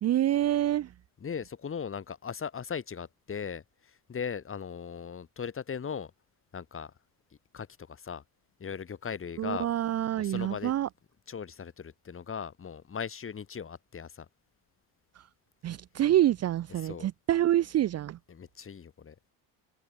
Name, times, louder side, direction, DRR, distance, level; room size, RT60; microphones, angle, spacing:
voice 1, 0.0-0.9 9.4-10.9 15.2-15.3 15.6-18.2, right 12 dB, 35° right, 0.7 m, -27 dB
voice 2, 1.2-6.1 6.5-6.9 7.5-8.2 8.6-9.7 10.2-10.7 11.3-14.3 16.8-17.1 18.3-19.2, left 6 dB, 30° left, 4.2 m, -38 dB
supercardioid pair, 105°, 42 cm